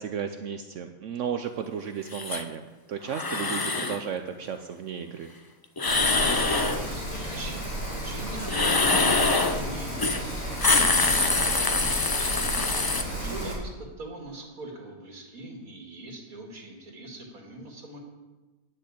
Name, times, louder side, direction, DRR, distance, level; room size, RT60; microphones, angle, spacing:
voice 1, 0.0-5.3 10.6-10.9 13.2-13.6, right 7 dB, 65° right, 7 dB, 0.9 m, -34 dB
sound 1, 2.1-2.4 3.1-4.0 5.8-6.8 8.4-9.6 10.0-10.2 10.5-13.0, left 3 dB, 30° left, 0.4 m, -24 dB
Rain, 5.9-13.5, right 1 dB, 75° left, 3.4 m, -33 dB
voice 2, 6.0-10.2 10.6-12.7 13.2-18.0, right 2 dB, 90° right, 1 dB, 2.8 m, -41 dB
10.0 x 6.6 x 8.4 m, 1.2 s
omnidirectional pair, 1.5 m